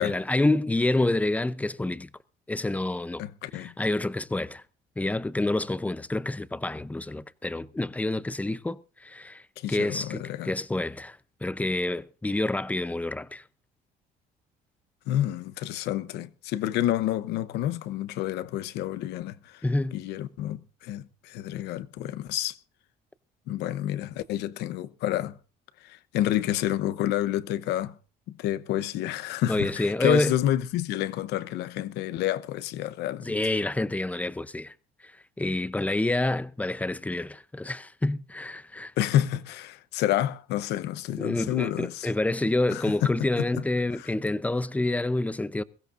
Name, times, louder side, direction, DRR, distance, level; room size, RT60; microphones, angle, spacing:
voice 1, 0.0-2.1 2.5-3.2 3.5-4.6 5.0-9.4 9.7-13.4 19.6-19.9 29.5-30.3 33.2-34.7 35.0-35.1 35.4-38.9 41.2-45.6, left 2 dB, 10° left, 0.6 m, -28 dB
voice 2, 3.2-3.7 9.6-10.5 15.1-19.6 19.9-22.6 23.5-25.3 25.8-27.9 28.3-33.3 39.0-42.1 42.7-43.1 44.0-44.1, left 13 dB, 85° left, 0.8 m, -29 dB
22.0 x 15.5 x 2.6 m
cardioid pair, 110°, 17 cm